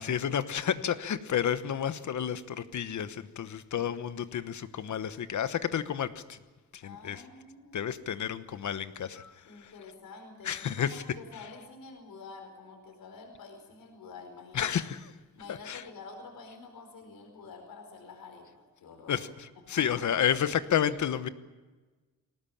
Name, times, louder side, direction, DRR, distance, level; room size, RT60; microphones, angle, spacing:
voice 1, 0.0-6.4 6.7-7.2 7.7-9.7 10.4-11.0 14.5-15.1 15.5-15.8 19.1-21.3, left 9 dB, 55° left, 13 dB, 1.1 m, -31 dB
voice 2, 6.8-8.0 9.4-10.5 10.8-14.7 15.3-19.2 19.7-20.0, left 4 dB, 75° left, 3 dB, 4.7 m, -48 dB
21.0 x 18.5 x 8.7 m, 1.2 s
wide cardioid pair, 140°, 34 cm